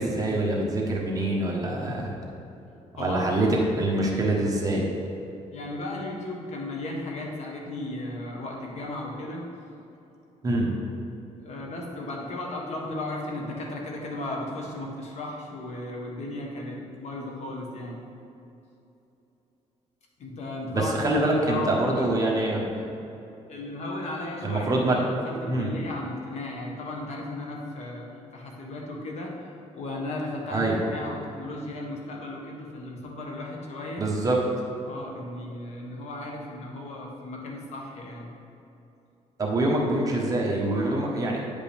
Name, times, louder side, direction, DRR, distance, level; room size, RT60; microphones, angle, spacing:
voice 1, 0.0-2.1 3.0-3.5 3.7-4.8 10.4-10.7 20.7-22.8 24.4-25.0 25.5-25.7 30.5-30.8 34.0-34.4 39.4-41.4, right 2 dB, 25° right, -3 dB, 1.3 m, -25 dB
voice 2, 3.0-3.4 5.5-9.5 11.4-18.0 20.2-22.1 23.5-28.1 28.3-29.3 29.7-34.1 34.8-38.3, left 2 dB, 60° left, -1 dB, 1.3 m, -35 dB
9.5 x 5.2 x 3.5 m, 2.8 s
cardioid pair, 125°, 13 cm